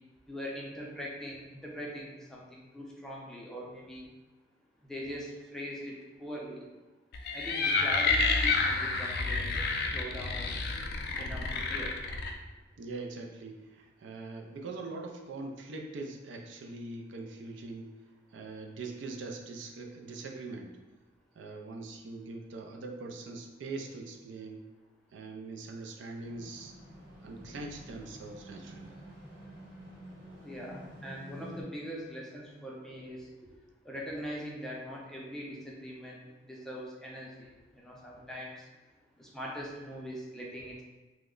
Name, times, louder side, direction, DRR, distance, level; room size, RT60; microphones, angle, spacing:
voice 1, 0.3-4.1 4.8-5.9 6.2-6.6 7.3-9.6 9.9-10.5 11.2-11.9 30.4-33.3 33.8-38.5 39.2-40.8, equal, 5° left, -4 dB, 0.5 m, -41 dB
sound 1, 7.1-12.3, left 4 dB, 55° left, 0.3 m, -29 dB
voice 2, 12.8-17.9 18.3-20.8 21.4-24.6 25.1-26.7 27.2-29.0, right 3 dB, 70° right, 2 dB, 0.4 m, -42 dB
sound 2, 26.2-31.6, equal, 50° right, 1.3 m, -49 dB
3.0 x 2.1 x 3.7 m, 1.2 s
head